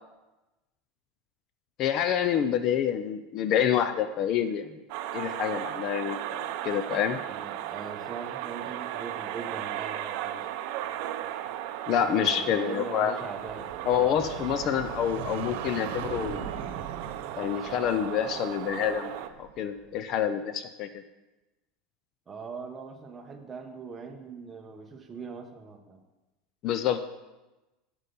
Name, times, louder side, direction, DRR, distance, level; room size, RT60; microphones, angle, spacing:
voice 1, 1.8-4.8 5.1-7.2 11.9-13.1 13.9-16.4 17.4-19.1 19.4-21.0 26.6-27.0, left 9 dB, 40° left, 11 dB, 0.5 m, -27 dB
sound 1, 4.9-19.3, right 12 dB, 60° right, 0.6 m, -36 dB
voice 2, 7.3-10.4 12.0-14.1 22.3-26.0, right 5 dB, 20° right, 4 dB, 1.0 m, -41 dB
sound 2, 13.3-19.9, right 7 dB, 80° right, 1.0 m, -41 dB
8.2 x 8.0 x 5.3 m, 1.1 s
supercardioid pair, 155°, 0 cm